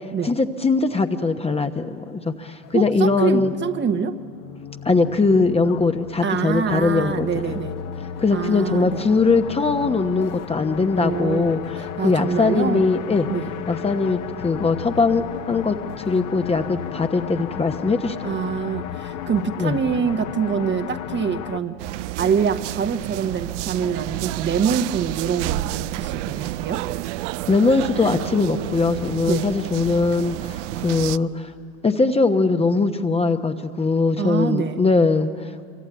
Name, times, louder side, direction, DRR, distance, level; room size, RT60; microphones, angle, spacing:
voice 1, 0.2-3.5 4.8-7.5 8.2-11.6 12.0-13.3 13.7-15.8 16.0-18.4 19.6-19.8 27.5-31.5 31.8-35.7, left 3 dB, 15° left, 6 dB, 1.1 m, -21 dB
sound 1, 2.6-21.6, left 9 dB, 45° left, 1.3 m, -34 dB
voice 2, 2.7-4.2 6.2-7.8 8.3-9.0 10.9-12.8 13.3-13.5 18.2-21.8 22.2-26.8 29.3-29.5 34.2-34.8, right 7 dB, 25° right, 8 dB, 1.3 m, -25 dB
sound 2, 21.8-31.2, right 16 dB, 55° right, 0.6 m, -30 dB
26.0 x 24.0 x 9.2 m, 2.2 s
hypercardioid pair, 90°, 43 cm